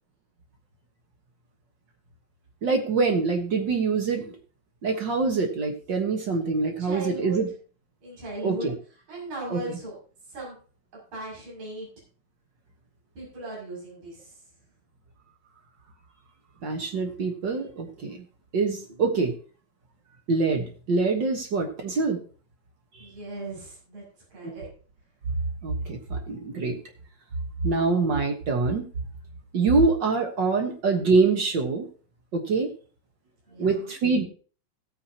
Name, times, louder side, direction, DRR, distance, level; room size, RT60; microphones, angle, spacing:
voice 1, 2.6-4.3 4.8-7.5 8.4-8.7 9.5-9.8 16.6-18.2 18.5-19.3 20.3-22.2 22.9-23.1 24.4-24.5 25.6-26.8 27.6-28.8 29.5-31.9 32.3-32.7 33.6-34.2, right 4 dB, 70° right, 3 dB, 1.0 m, -25 dB
voice 2, 6.3-7.4 8.0-8.7 9.1-10.0 10.3-10.6 11.1-11.9 13.1-14.4 18.9-19.0 23.0-24.0 24.3-24.7 33.5-33.9, right 2 dB, 50° right, -5 dB, 7.8 m, -38 dB
17.0 x 8.9 x 2.9 m, 0.40 s
omnidirectional pair, 4.1 m